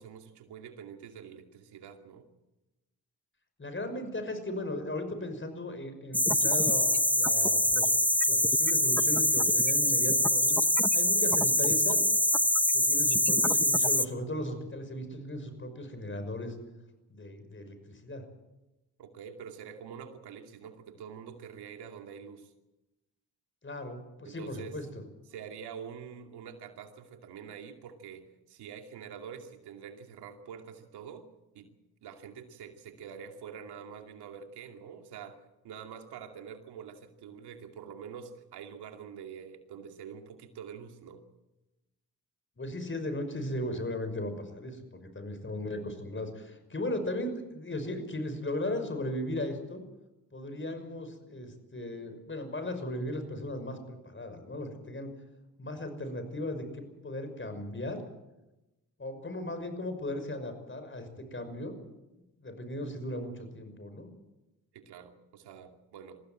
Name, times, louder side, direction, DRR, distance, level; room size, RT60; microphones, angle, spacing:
voice 1, 0.0-2.3 19.0-22.5 24.2-24.8 25.3-31.3 31.5-31.7 32.0-41.2 64.7-66.2, right 7 dB, 85° right, 5 dB, 2.6 m, -46 dB
voice 2, 3.6-7.9 8.3-10.6 10.9-12.1 12.7-16.6 17.1-18.2 23.6-24.8 42.6-49.8 50.3-55.1 55.6-58.0 59.0-61.7 62.4-64.1, left 1 dB, 30° left, 8 dB, 5.9 m, -37 dB
sound 1, 6.1-14.0, left 1 dB, 5° left, 0.9 m, -24 dB
22.5 x 15.5 x 8.9 m, 1.0 s
supercardioid pair, 60°, 38 cm